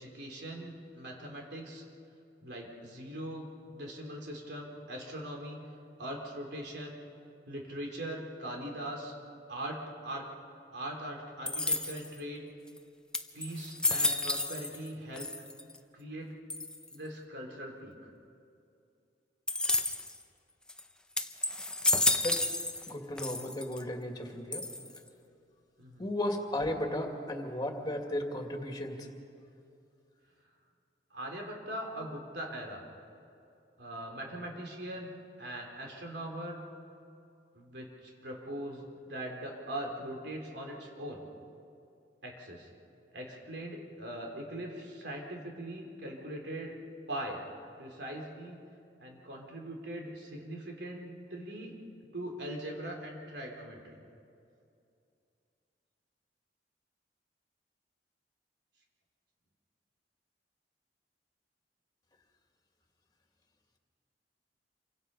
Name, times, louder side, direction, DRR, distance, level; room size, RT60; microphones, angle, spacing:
voice 1, 0.0-1.8 2.4-3.5 3.7-5.6 6.0-7.0 7.5-9.1 9.5-10.3 10.7-12.5 13.3-15.3 15.9-16.3 16.9-18.1 25.8-26.1 31.1-32.8 33.8-35.1 35.4-36.7 37.5-41.3 42.2-42.7 43.1-46.7 47.1-47.4 47.8-48.6 49.0-51.7 52.1-54.0, right 1 dB, 70° right, 0 dB, 3.7 m, -41 dB
sound 1, 11.5-12.2 12.8-12.9 13.1-14.9 15.2-15.8 16.5-16.9 19.5-20.2 20.7-20.8 21.2-22.9 23.2-23.8 24.5-25.1, left 2 dB, 5° left, 0.8 m, -31 dB
voice 2, 22.9-24.6 26.0-29.1, left 1 dB, 25° left, 2 dB, 2.4 m, -35 dB
28.0 x 24.5 x 5.6 m, 2.6 s
head